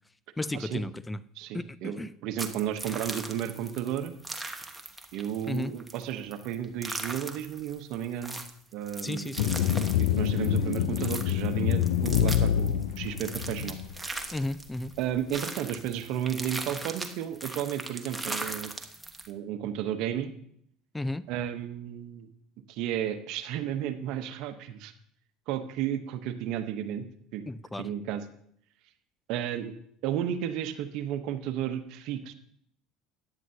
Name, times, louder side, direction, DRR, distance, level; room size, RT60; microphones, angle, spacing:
voice 1, 0.4-1.2 1.5-2.1 5.5-5.7 9.0-9.5 14.3-14.9 20.9-21.2 27.5-27.9, left 2 dB, 10° left, 16 dB, 0.4 m, -33 dB
voice 2, 1.3-4.1 5.1-8.4 8.7-9.4 10.2-13.8 15.0-18.7 19.3-20.3 21.3-22.3 22.7-24.9 25.5-27.1 27.3-27.4 27.8-28.2 29.3-29.7 30.0-32.3, right 10 dB, 65° right, 9 dB, 1.0 m, -33 dB
sound 1, 2.4-19.3, right 2 dB, 10° right, 1.1 m, -39 dB
sound 2, 9.4-13.9, left 10 dB, 80° left, 0.6 m, -26 dB
13.5 x 9.9 x 2.8 m, 0.67 s
supercardioid pair, 90°, 0 cm